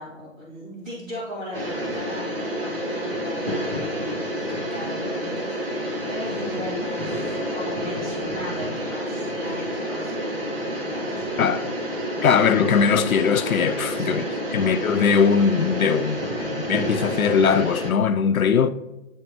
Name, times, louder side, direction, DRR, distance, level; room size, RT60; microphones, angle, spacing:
voice 1, 0.0-12.0 14.0-14.2, left 1 dB, 5° right, 1.6 m, -37 dB
sound 1, 1.5-17.9, equal, 45° right, 1.4 m, -29 dB
voice 2, 12.2-14.2 14.5-18.7, left 6 dB, 85° left, 0.6 m, -20 dB
9.9 x 3.3 x 4.4 m
hypercardioid pair, 175°, 41 cm